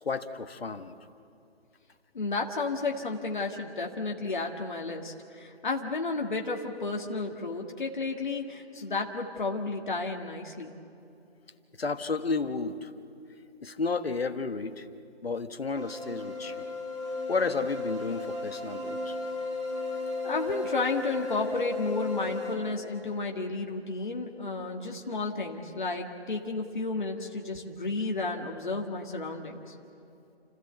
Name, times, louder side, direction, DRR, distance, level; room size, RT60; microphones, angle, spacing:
voice 1, 0.0-1.0 11.8-12.9 13.6-14.9 15.2-16.7 17.3-19.2, left 4 dB, 60° left, 10 dB, 1.3 m, -32 dB
voice 2, 2.1-10.7 20.2-29.7, left 3 dB, 45° left, 1 dB, 1.9 m, -32 dB
sound 1, 15.8-22.6, left 3 dB, 25° right, 3.6 m, -34 dB
30.0 x 14.0 x 8.0 m, 2.7 s
figure-of-eight pair, 165°, 33 cm